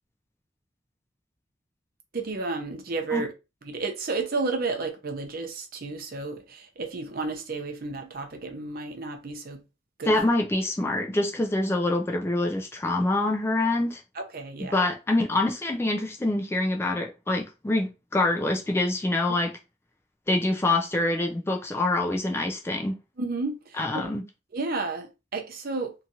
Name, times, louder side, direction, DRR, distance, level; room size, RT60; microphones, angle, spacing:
voice 1, 2.1-3.3 3.6-9.6 10.0-10.2 14.1-14.9 23.2-24.1 24.5-25.9, right 3 dB, 50° right, 0.6 m, -32 dB
voice 2, 10.1-14.0 14.7-19.5 20.3-23.0 23.8-24.2, left 2 dB, 15° left, 0.3 m, -25 dB
2.8 x 2.4 x 2.8 m
head